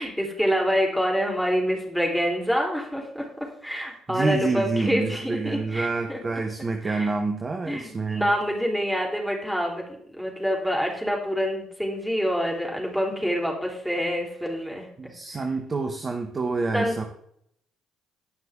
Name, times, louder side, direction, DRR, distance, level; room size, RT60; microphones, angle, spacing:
voice 1, 0.0-6.2 6.8-7.1 7.7-9.9 10.1-14.9 16.7-17.1, equal, ahead, -1 dB, 4.1 m, -26 dB
voice 2, 4.1-8.3 15.0-17.0, right 3 dB, 35° right, 4 dB, 1.4 m, -27 dB
17.5 x 6.0 x 3.7 m, 0.70 s
figure-of-eight pair, 50°, 0 cm